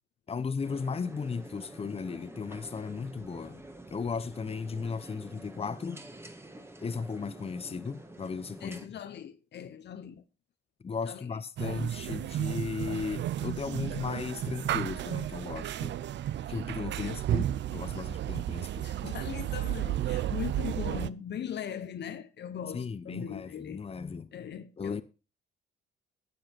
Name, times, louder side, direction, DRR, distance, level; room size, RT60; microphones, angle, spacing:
voice 1, 0.3-3.6 3.9-6.0 6.8-8.8 10.8-16.0 16.5-18.9 22.7-24.3 24.8-25.0, left 5 dB, 30° left, 0.9 m, -36 dB
sound 1, 0.6-8.9, right 1 dB, 10° right, 1.6 m, -48 dB
voice 2, 8.6-10.2 11.0-11.9 16.9-17.2 18.8-23.8 24.3-25.0, left 9 dB, 60° left, 1.0 m, -40 dB
sound 2, 11.6-21.1, right 12 dB, 65° right, 0.6 m, -33 dB
12.0 x 7.9 x 4.6 m
cardioid pair, 90°, 20 cm